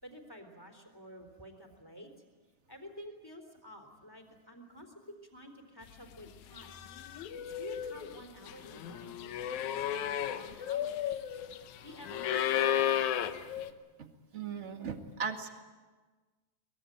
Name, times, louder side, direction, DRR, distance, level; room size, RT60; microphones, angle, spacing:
voice 1, 0.0-2.1 2.7-4.9 5.3-6.7 7.1-11.0 11.8-13.0, equal, 5° left, 4 dB, 3.4 m, -50 dB
sound 1, 6.1-6.3 6.6-13.7, left 10 dB, 80° left, 2.4 m, -34 dB
voice 2, 14.0-15.5, right 6 dB, 30° right, 5 dB, 1.7 m, -39 dB
23.5 x 21.5 x 9.3 m, 1.3 s
omnidirectional pair, 3.3 m